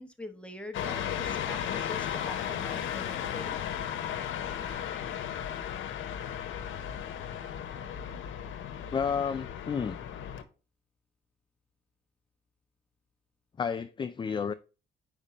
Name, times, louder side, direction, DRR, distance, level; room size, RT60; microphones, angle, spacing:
voice 1, 0.0-3.6, left 2 dB, 5° left, 0.9 m, -44 dB
sound 1, 0.7-10.4, left 9 dB, 75° left, 0.8 m, -35 dB
voice 2, 8.9-10.0 13.6-14.5, left 6 dB, 25° left, 0.4 m, -31 dB
4.9 x 3.6 x 5.4 m
cardioid pair, 90°, 20 cm